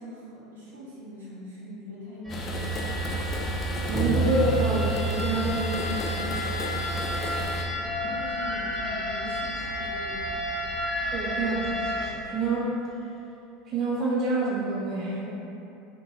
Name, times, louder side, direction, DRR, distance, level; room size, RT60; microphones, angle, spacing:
voice 1, 0.0-2.9 7.5-10.4, equal, 80° right, -7 dB, 0.7 m, -42 dB
sound 1, 2.2-12.1, equal, 10° right, 0.7 m, -30 dB
sound 2, 2.3-7.6, right 1 dB, 35° left, 0.3 m, -32 dB
voice 2, 3.8-6.5 11.1-12.8 13.7-15.3, right 2 dB, 45° right, -5 dB, 0.4 m, -28 dB
2.7 x 2.2 x 2.8 m, 2.7 s
figure-of-eight pair, 75°, 0 cm